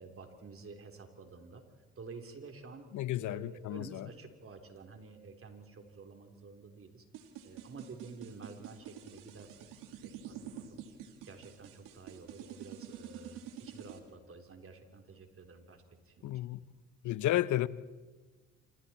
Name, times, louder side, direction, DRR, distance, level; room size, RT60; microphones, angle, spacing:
voice 1, 0.0-1.6 2.0-2.9 3.2-7.1 7.4-9.7 10.0-10.8 11.2-16.5, right 4 dB, 45° right, 5 dB, 3.6 m, -50 dB
voice 2, 2.9-4.1 16.2-16.6 17.0-17.7, left 14 dB, 65° left, 18 dB, 0.8 m, -32 dB
sound 1, 7.1-14.0, right 9 dB, 80° right, 2.2 m, -47 dB
26.5 x 26.5 x 4.4 m, 1.3 s
supercardioid pair, 60°, 32 cm